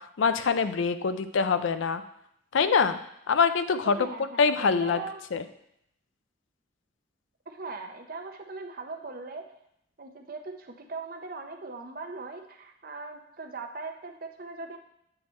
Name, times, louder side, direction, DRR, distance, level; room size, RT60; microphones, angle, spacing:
voice 1, 0.0-2.0 2.5-3.0 3.3-4.0 4.4-5.0 5.3-5.4, left 5 dB, 75° left, 11 dB, 0.4 m, -24 dB
voice 2, 3.8-5.2 7.5-9.4 10.0-14.8, right 3 dB, 45° right, 5 dB, 0.7 m, -40 dB
7.6 x 4.3 x 4.3 m, 0.75 s
head